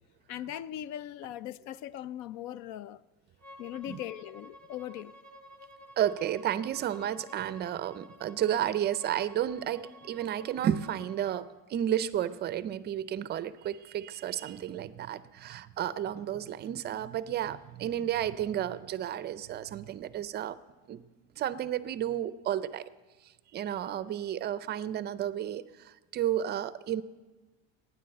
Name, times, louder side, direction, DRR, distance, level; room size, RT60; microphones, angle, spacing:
voice 1, 0.3-3.0 3.6-5.1, left 12 dB, 70° left, 0.5 m, -39 dB
Bowed string instrument, 3.4-11.4, equal, 5° left, 1.9 m, -52 dB
voice 2, 6.0-20.6 20.9-21.0 21.4-22.9 23.5-27.0, right 11 dB, 35° right, 0.5 m, -32 dB
16.0 x 9.9 x 7.7 m
cardioid pair, 165°, 30 cm